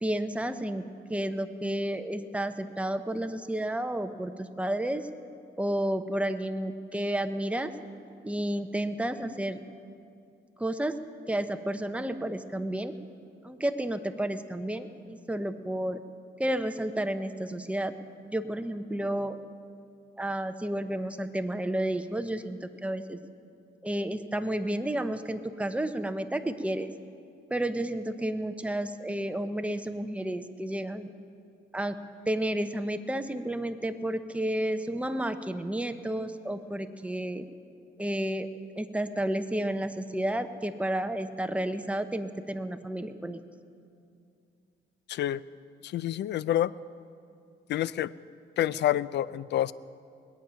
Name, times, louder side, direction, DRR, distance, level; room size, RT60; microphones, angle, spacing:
voice 1, 0.0-0.8 1.1-5.1 5.6-7.7 8.2-9.6 10.6-11.0 11.3-12.9 13.4-16.0 16.4-17.9 18.3-19.4 20.2-23.2 23.8-26.9 27.5-31.1 31.7-32.0 32.3-37.4 38.0-38.5 38.8-43.4, right 1 dB, 5° right, 8 dB, 0.8 m, -31 dB
voice 2, 45.1-45.4 45.8-46.7 47.7-48.1 48.6-49.7, left 12 dB, 60° left, 19 dB, 0.4 m, -28 dB
21.0 x 9.0 x 5.7 m, 2.5 s
cardioid pair, 90°, 20 cm